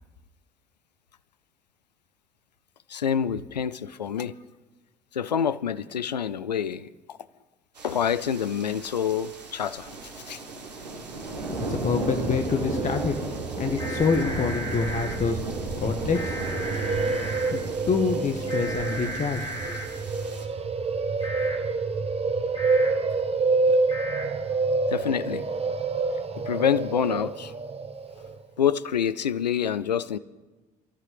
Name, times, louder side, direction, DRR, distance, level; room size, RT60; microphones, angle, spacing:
voice 1, 2.9-4.4 5.1-7.2 7.8-9.9 10.3-10.4 24.9-25.4 26.4-27.5 28.6-30.2, left 8 dB, 85° left, 0.4 m, -27 dB
sound 1, 7.8-20.5, right 3 dB, 85° right, 1.2 m, -36 dB
sound 2, 11.4-28.4, right 3 dB, 30° right, 1.0 m, -28 dB
voice 2, 11.5-13.1 13.6-15.4 15.8-16.4 17.5-19.8, left 5 dB, 35° left, 1.4 m, -26 dB
sound 3, 13.8-15.1 16.1-17.5 18.5-19.8 21.2-21.6 22.5-22.9 23.9-24.2, right 1 dB, 20° left, 7.4 m, -35 dB
29.0 x 14.5 x 3.4 m
figure-of-eight pair, 50°, 21 cm